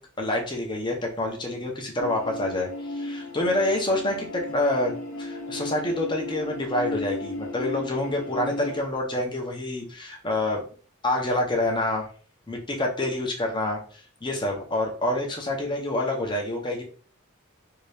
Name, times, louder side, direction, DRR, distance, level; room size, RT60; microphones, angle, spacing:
voice 1, 0.2-4.9 5.2-10.6 11.0-12.1 12.5-13.8 14.2-16.8, left 1 dB, 20° left, 1 dB, 0.7 m, -27 dB
sound 1, 2.0-8.8, left 2 dB, 90° left, 0.8 m, -35 dB
2.8 x 2.7 x 3.3 m, 0.42 s
head